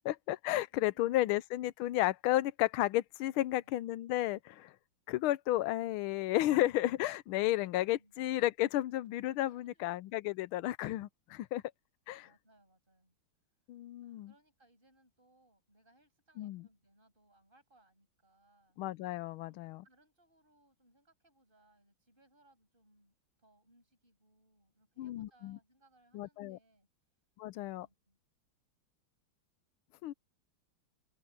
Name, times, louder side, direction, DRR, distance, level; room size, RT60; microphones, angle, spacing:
voice 1, 0.0-4.7 5.1-11.6 12.1-12.3 13.7-14.3 16.4-16.6 18.8-19.8 25.0-25.6 26.1-26.6 27.4-27.9 30.0-30.1, left 15 dB, 80° left, 1.5 m, -33 dB
voice 2, 0.7-1.2 3.2-3.7 7.9-8.2 9.4-9.9 12.2-13.2 14.0-18.8 19.5-26.9 27.7-28.2, right 1 dB, 25° right, 7.6 m, -69 dB
open air
omnidirectional pair, 2.3 m